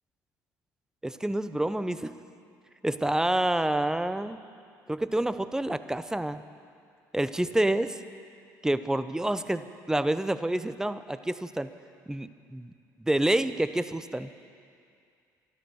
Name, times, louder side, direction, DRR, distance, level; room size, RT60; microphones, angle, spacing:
voice 1, 1.0-2.1 2.8-4.4 4.9-6.4 7.1-8.0 8.6-11.7 12.1-12.7 13.0-14.3, right 1 dB, 5° right, 13 dB, 0.6 m, -28 dB
13.0 x 12.5 x 7.0 m, 2.4 s
supercardioid pair, 70°, 8 cm